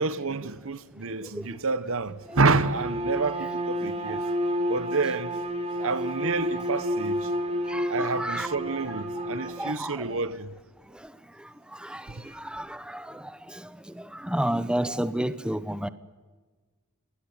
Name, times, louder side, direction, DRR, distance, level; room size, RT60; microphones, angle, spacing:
voice 1, 0.0-4.2 4.7-5.3 5.8-7.3 7.9-10.5 12.1-12.3, right 3 dB, 65° right, 1.4 m, -28 dB
Bowed string instrument, 2.3-9.8, equal, 30° right, 4.3 m, -30 dB
voice 2, 7.7-8.5 9.6-10.0 11.8-12.0 12.5-13.0 14.2-15.9, right 1 dB, 5° right, 0.9 m, -29 dB
29.5 x 21.0 x 9.7 m
head